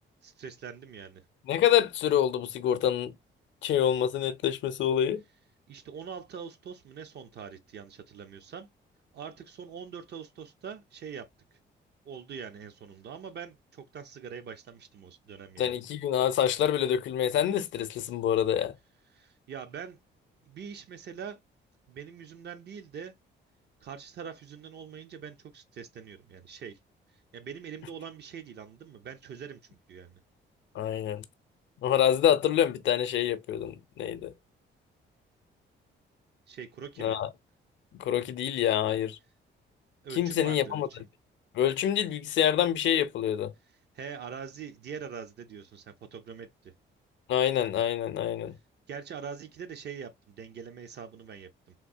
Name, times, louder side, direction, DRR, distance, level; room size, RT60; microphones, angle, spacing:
voice 1, 0.2-1.2 5.7-8.7 9.1-11.6 12.0-15.7 19.1-20.0 20.5-21.4 21.9-23.1 23.8-26.8 27.3-29.6 29.9-30.2 36.5-37.2 40.0-40.8 43.9-46.7 48.9-51.7, right 7 dB, 60° right, 0.7 m, -43 dB
voice 2, 1.5-3.1 3.6-5.2 15.6-18.7 30.7-31.2 31.8-34.3 37.0-37.3 37.9-39.2 40.1-40.9 41.5-43.5 47.3-48.6, left 10 dB, 70° left, 0.5 m, -26 dB
3.7 x 2.7 x 2.6 m
cardioid pair, 90°, 20 cm